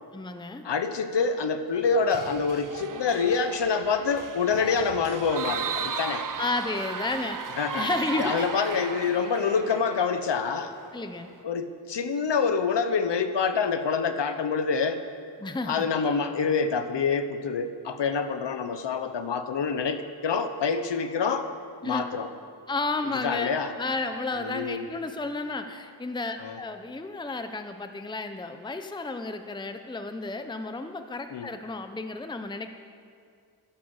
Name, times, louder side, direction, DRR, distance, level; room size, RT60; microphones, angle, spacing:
voice 1, 0.1-0.6 6.4-7.4 7.7-8.5 10.9-11.3 15.4-15.9 21.8-22.1 22.7-32.7, left 3 dB, 10° left, 7 dB, 0.7 m, -32 dB
voice 2, 0.6-6.3 7.6-7.9 8.2-10.7 11.4-15.0 15.6-21.5 21.8-22.3 23.2-23.7 24.4-24.9 26.4-26.6 31.3-31.5, left 5 dB, 75° left, 9 dB, 1.1 m, -26 dB
sound 1, 1.7-11.4, right 6 dB, 45° right, 0.8 m, -36 dB
15.5 x 11.5 x 7.2 m, 2.3 s
wide cardioid pair, 110°, 43 cm